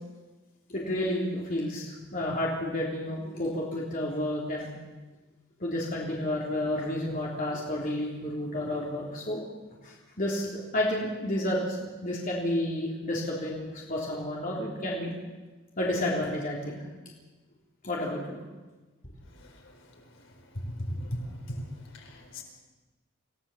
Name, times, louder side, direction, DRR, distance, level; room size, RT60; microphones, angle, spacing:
voice 1, 0.7-4.7 5.6-9.4 9.8-15.1 15.8-16.8 17.8-18.4, left 1 dB, 45° left, -4 dB, 3.5 m, -31 dB
voice 2, 19.3-19.8 20.6-22.4, equal, 65° left, 2 dB, 4.5 m, -37 dB
27.0 x 16.5 x 7.4 m, 1.2 s
head